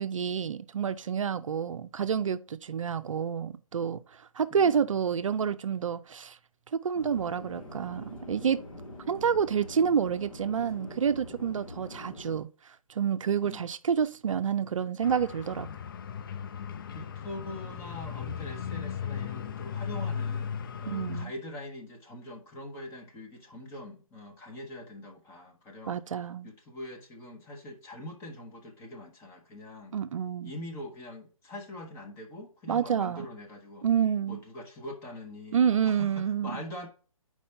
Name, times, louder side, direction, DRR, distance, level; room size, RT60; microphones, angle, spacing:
voice 1, 0.0-6.4 6.7-8.6 9.1-15.7 20.9-21.3 25.9-26.5 29.9-30.5 32.7-33.3 33.8-34.4 35.5-36.5, right 7 dB, 65° right, 0.5 m, -28 dB
voice 2, 4.5-4.8 13.4-13.7 16.9-26.0 26.4-30.0 30.4-33.9 34.3-36.9, left 1 dB, 15° left, 0.9 m, -43 dB
Chatter / Fixed-wing aircraft airplane, 6.9-12.4, left 1 dB, 65° left, 1.9 m, -44 dB
sound 1, 15.0-21.3, left 7 dB, 40° left, 0.4 m, -36 dB
4.7 x 4.2 x 5.4 m
figure-of-eight pair, 140°, 18 cm